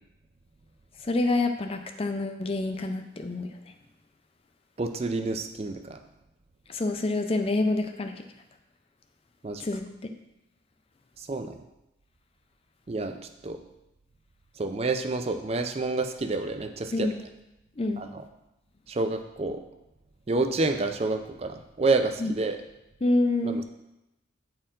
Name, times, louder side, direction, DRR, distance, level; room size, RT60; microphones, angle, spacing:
voice 1, 1.0-3.5 6.7-8.2 9.6-10.1 16.9-17.2 17.8-18.0 22.2-22.3 23.0-23.6, left 2 dB, 30° left, 6 dB, 0.4 m, -27 dB
voice 2, 4.8-6.0 9.4-9.7 11.2-11.6 12.9-13.2 13.4-13.6 14.6-17.1 18.0-18.2 18.9-19.6 20.3-22.6 23.4-23.6, right 3 dB, 30° right, 7 dB, 0.4 m, -28 dB
8.5 x 4.4 x 3.8 m, 0.92 s
head